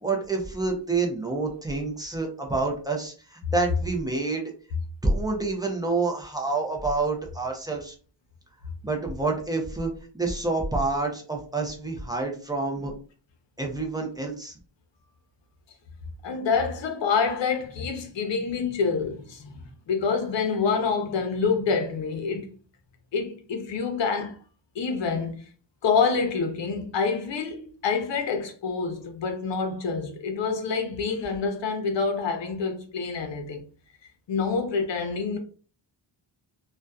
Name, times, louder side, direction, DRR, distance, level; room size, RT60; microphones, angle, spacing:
voice 1, 0.0-4.4 5.0-7.9 8.8-9.9 10.1-12.9 13.6-14.5, right 3 dB, 10° right, 0.5 m, -28 dB
voice 2, 16.2-22.5 23.1-24.4 24.7-25.4 25.8-33.6 34.3-35.4, left 5 dB, 65° left, 0.7 m, -27 dB
2.6 x 2.2 x 2.3 m
wide cardioid pair, 120°, 47 cm